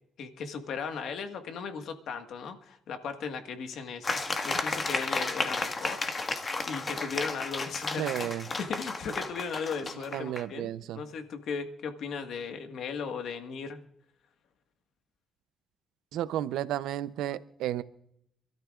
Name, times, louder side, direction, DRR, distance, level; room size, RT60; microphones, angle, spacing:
voice 1, 0.2-6.2 6.6-8.3 8.6-13.8, left 5 dB, 70° left, 6 dB, 1.6 m, -37 dB
sound 1, 4.0-10.5, left 3 dB, 30° left, 1.7 m, -33 dB
voice 2, 8.0-8.4 10.1-11.0 16.1-17.8, right 12 dB, 85° right, 15 dB, 0.6 m, -32 dB
27.0 x 13.5 x 2.5 m, 0.74 s
cardioid pair, 90°, 0 cm